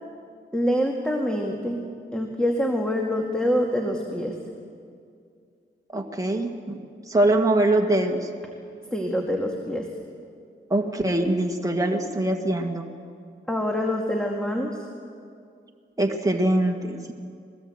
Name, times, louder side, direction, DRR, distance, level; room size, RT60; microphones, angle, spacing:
voice 1, 0.5-1.8 2.1-4.4 8.9-9.9 13.5-14.9, equal, 5° left, 1 dB, 2.2 m, -25 dB
voice 2, 5.9-6.8 7.1-8.3 10.7-12.9 16.0-17.1, right 1 dB, 15° right, 2 dB, 1.9 m, -23 dB
22.5 x 18.5 x 8.0 m, 2.3 s
cardioid pair, 75°, 21 cm